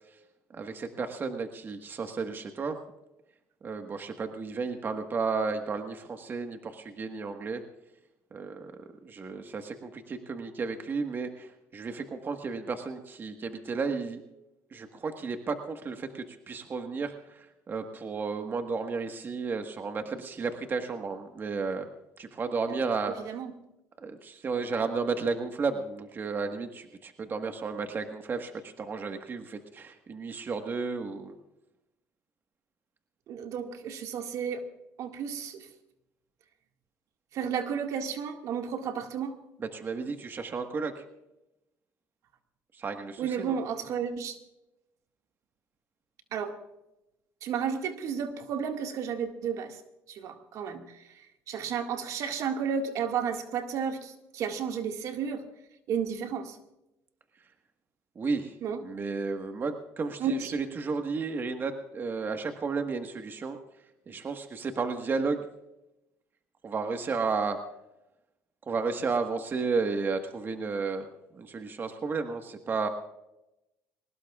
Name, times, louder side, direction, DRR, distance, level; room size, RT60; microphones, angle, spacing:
voice 1, 0.5-2.8 3.6-7.6 8.3-14.2 14.7-21.9 22.2-23.2 24.0-31.3 39.6-41.0 42.7-43.6 58.1-58.5 58.8-63.6 64.1-65.4 66.6-67.6 68.7-71.1 71.3-72.9, right 4 dB, 35° right, 6 dB, 1.5 m, -33 dB
voice 2, 23.0-23.5 33.3-34.6 35.0-35.7 37.3-39.4 43.2-44.4 46.3-46.6 47.4-49.8 50.1-51.0 51.5-55.4 55.9-56.6 58.6-58.8 60.2-60.5, right 7 dB, 65° right, 5 dB, 2.0 m, -32 dB
22.5 x 19.5 x 2.4 m, 0.91 s
cardioid pair, 105°, 6 cm